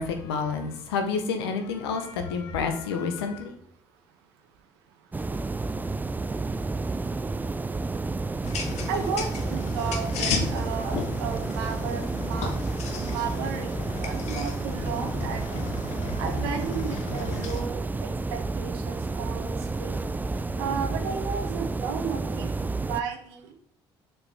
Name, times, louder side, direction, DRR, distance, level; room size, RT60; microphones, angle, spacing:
voice 1, 0.0-3.5, left 5 dB, 80° left, 7 dB, 0.9 m, -29 dB
sound 1, 5.1-23.0, right 3 dB, 15° right, 0.3 m, -31 dB
sound 2, 8.4-17.6, left 5 dB, 60° left, 1.0 m, -34 dB
voice 2, 8.9-12.5 13.0-13.7 14.0-15.6 16.2-20.0 20.5-22.5 22.9-23.5, right 7 dB, 75° right, 5 dB, 1.0 m, -34 dB
6.6 x 4.4 x 3.5 m, 0.72 s
hypercardioid pair, 55°, 13 cm